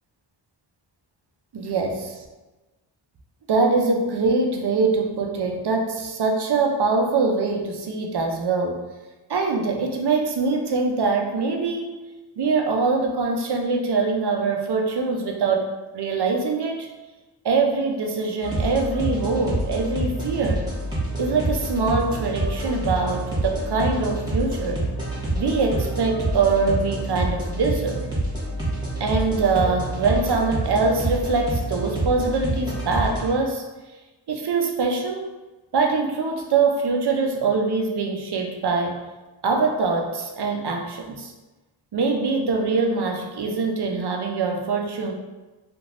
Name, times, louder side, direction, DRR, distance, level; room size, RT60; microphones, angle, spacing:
voice 1, 1.5-2.2 3.5-8.8 9.3-11.9 12.4-16.9 17.4-20.7 21.2-24.8 25.3-28.0 29.0-33.6 34.3-35.3 35.7-39.0 39.4-41.3 41.9-45.1, right 4 dB, 55° right, 2 dB, 0.6 m, -23 dB
sound 1, 18.4-33.3, right 1 dB, 10° right, 1.3 m, -27 dB
3.2 x 2.5 x 2.5 m, 1.2 s
cardioid pair, 45°, 48 cm